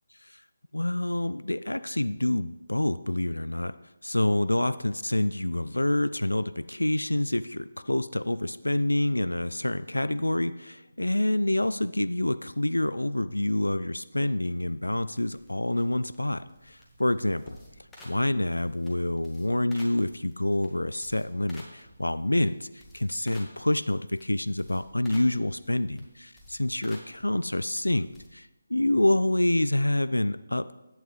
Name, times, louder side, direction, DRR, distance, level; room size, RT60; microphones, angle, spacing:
voice 1, 0.7-3.7 4.0-17.6 18.0-30.8, left 1 dB, 85° left, 14 dB, 0.3 m, -27 dB
sound 1, 14.4-28.3, left 1 dB, 5° left, 1.5 m, -54 dB
10.5 x 8.8 x 3.2 m, 1.0 s
figure-of-eight pair, 155°, 0 cm